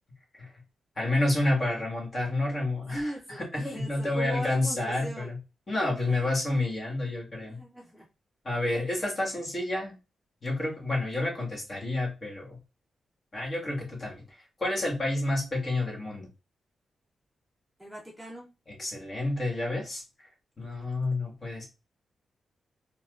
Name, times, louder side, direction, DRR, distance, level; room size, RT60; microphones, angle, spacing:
voice 1, 1.0-3.1 3.4-5.4 5.7-7.6 8.4-9.9 10.4-12.6 13.3-16.3 18.7-20.3 20.6-21.6, left 2 dB, 40° left, -1 dB, 1.4 m, -29 dB
voice 2, 2.8-3.4 3.7-5.3 6.1-6.4 7.5-8.1 17.8-18.5, equal, 5° right, -2 dB, 0.6 m, -39 dB
4.6 x 2.2 x 2.4 m, 0.29 s
cardioid pair, 105°, 0 cm